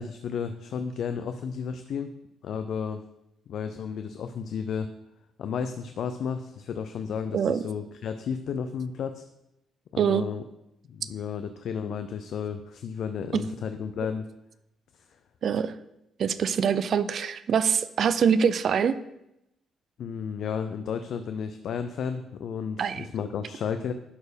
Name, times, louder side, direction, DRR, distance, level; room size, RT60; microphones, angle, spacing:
voice 1, 0.0-2.1 2.4-3.0 3.5-4.9 5.4-9.3 9.9-10.4 10.9-14.3 14.9-15.1 20.0-23.9, left 7 dB, 70° left, 9 dB, 0.5 m, -33 dB
voice 2, 15.4-15.7 16.2-19.0 22.8-23.1, right 7 dB, 60° right, 13 dB, 0.5 m, -24 dB
11.0 x 4.5 x 5.1 m, 0.84 s
cardioid pair, 90°, 0 cm